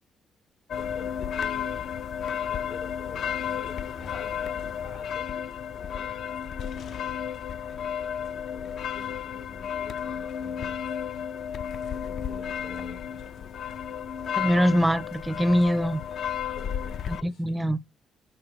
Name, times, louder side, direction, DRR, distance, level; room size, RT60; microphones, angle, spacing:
voice 1, 0.7-5.3 5.7-6.2 8.0-11.1 11.5-13.5 16.4-17.6, left 4 dB, 90° left, 3.6 m, -49 dB
sound 1, 0.7-17.2, left 8 dB, 65° left, 0.4 m, -33 dB
voice 2, 14.4-16.0 17.1-17.8, equal, 10° right, 0.4 m, -23 dB
5.9 x 4.6 x 4.7 m
cardioid pair, 90°, 0 cm